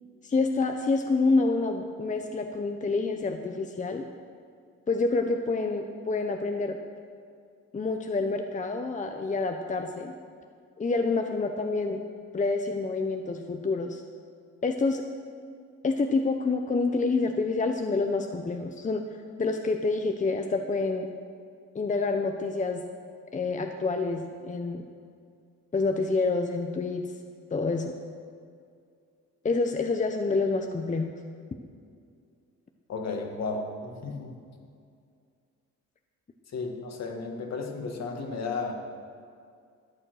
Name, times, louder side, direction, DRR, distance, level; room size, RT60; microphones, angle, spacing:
voice 1, 0.2-4.1 4.9-6.8 7.7-10.1 10.8-12.0 12.3-14.0 14.6-15.0 15.8-19.0 19.4-21.1 21.7-22.8 23.3-24.8 25.7-27.1 27.5-27.9 29.4-31.1, left 3 dB, 25° left, 4 dB, 0.8 m, -27 dB
voice 2, 32.9-34.4 36.5-38.7, left 4 dB, 60° left, 2 dB, 2.1 m, -33 dB
13.0 x 8.9 x 6.4 m, 2.3 s
cardioid pair, 90°, 30 cm